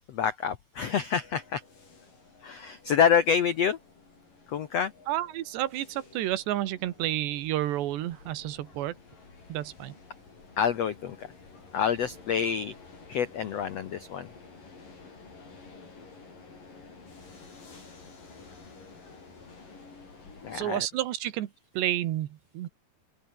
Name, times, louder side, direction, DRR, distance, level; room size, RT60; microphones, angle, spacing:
voice 1, 0.1-1.6 2.4-3.8 4.5-4.9 10.6-11.3 11.7-12.7 13.1-14.3 20.4-20.9, left 7 dB, 85° left, 1.4 m, -27 dB
sound 1, 1.2-20.7, left 4 dB, 50° left, 8.6 m, -51 dB
voice 2, 5.1-9.0 9.5-10.0 20.5-22.7, right 14 dB, 85° right, 3.7 m, -30 dB
open air
omnidirectional pair, 4.8 m